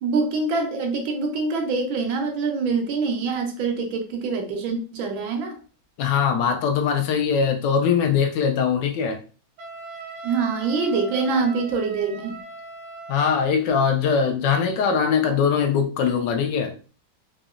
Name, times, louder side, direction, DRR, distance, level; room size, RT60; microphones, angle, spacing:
voice 1, 0.0-5.6 10.2-12.4, right 4 dB, 80° right, 1.5 m, -25 dB
voice 2, 6.0-9.2 13.1-16.7, left 6 dB, 75° left, 1.1 m, -21 dB
Wind instrument woodwind instrument, 9.6-13.5, right 3 dB, 65° right, 1.2 m, -39 dB
4.0 x 2.7 x 2.4 m
omnidirectional pair, 2.1 m